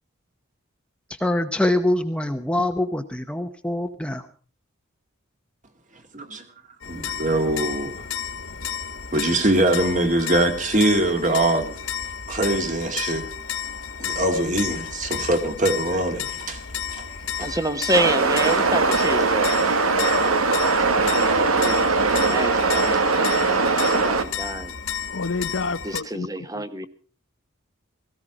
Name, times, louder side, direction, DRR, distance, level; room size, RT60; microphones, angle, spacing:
voice 1, 1.1-4.3, left 1 dB, 5° left, 0.8 m, -24 dB
voice 2, 6.1-6.4 6.9-7.9 9.1-11.8 12.3-13.3 14.0-16.6 16.9-17.1 17.4-17.5, right 1 dB, 35° right, 2.1 m, -22 dB
sound 1, 6.8-26.0, left 8 dB, 85° left, 2.0 m, -32 dB
voice 3, 17.4-19.5 20.9-24.7 25.8-26.9, right 1 dB, 15° right, 1.1 m, -28 dB
sound 2, 17.9-24.2, right 3 dB, 85° right, 1.5 m, -20 dB
voice 4, 25.1-26.3 26.5-26.9, left 3 dB, 65° left, 0.8 m, -29 dB
18.0 x 15.5 x 5.0 m
head